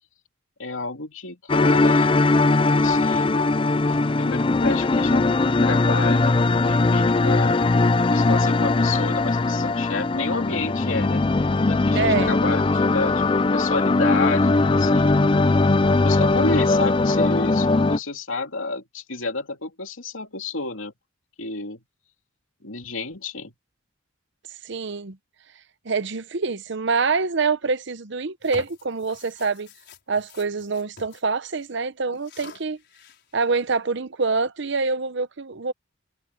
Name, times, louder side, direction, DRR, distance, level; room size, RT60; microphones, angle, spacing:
voice 1, 0.6-2.1 2.8-3.4 3.9-7.6 8.1-11.2 11.7-13.2 13.5-15.2 16.0-20.9 21.4-21.8 22.6-23.5, left 3 dB, 75° left, 2.7 m, -30 dB
sound 1, 1.5-18.0, left 3 dB, 25° left, 0.5 m, -20 dB
voice 2, 11.9-12.3 24.6-25.2 25.8-29.7 30.1-32.8 33.3-35.7, right 4 dB, 60° right, 0.8 m, -25 dB
sound 2, 28.4-31.2 31.5-31.7 32.1-33.4, left 4 dB, 55° left, 5.4 m, -45 dB
head